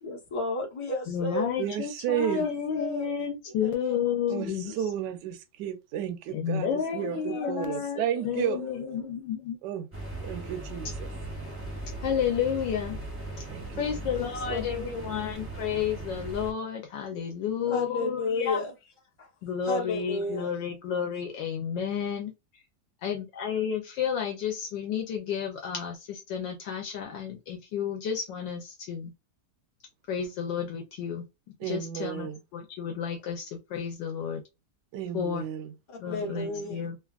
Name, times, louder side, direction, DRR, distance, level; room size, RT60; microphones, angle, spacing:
voice 1, 0.0-1.5 2.2-3.1 3.6-4.9 6.9-9.2 14.1-15.1 17.7-18.7 19.2-19.3 19.6-20.5 35.9-36.8, left 2 dB, 25° left, 0.6 m, -34 dB
voice 2, 1.1-4.7 6.3-9.6 12.0-13.0 13.4-13.5 13.8-18.6 19.4-22.6 23.0-29.1 30.1-31.3 31.6-34.4 35.1-35.4 36.0-37.0, left 8 dB, 75° left, 1.3 m, -31 dB
voice 3, 1.6-2.5 4.3-4.5 4.8-8.6 9.6-9.9 10.2-11.1 13.5-14.0 31.6-32.4 34.9-35.7 36.2-36.9, right 10 dB, 70° right, 1.1 m, -33 dB
sound 1, 9.9-16.5, right 2 dB, 15° right, 0.5 m, -38 dB
3.3 x 2.3 x 2.3 m
omnidirectional pair, 2.1 m